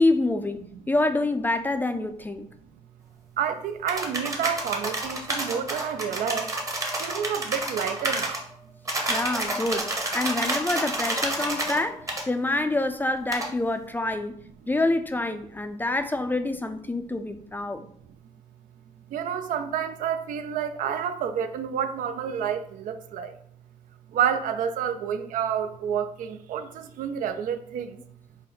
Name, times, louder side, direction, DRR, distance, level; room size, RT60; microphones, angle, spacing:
voice 1, 0.0-2.5 9.1-14.4 14.7-17.9, left 2 dB, 15° left, 0.3 m, -26 dB
voice 2, 3.4-6.5 7.0-8.4 19.1-23.4 24.1-28.0, right 8 dB, 80° right, 0.4 m, -29 dB
sound 1, 3.9-8.4 8.9-11.8 12.1-12.2 13.3-13.5, right 1 dB, 25° right, 0.9 m, -29 dB
4.0 x 2.1 x 3.8 m
cardioid pair, 85°, 14 cm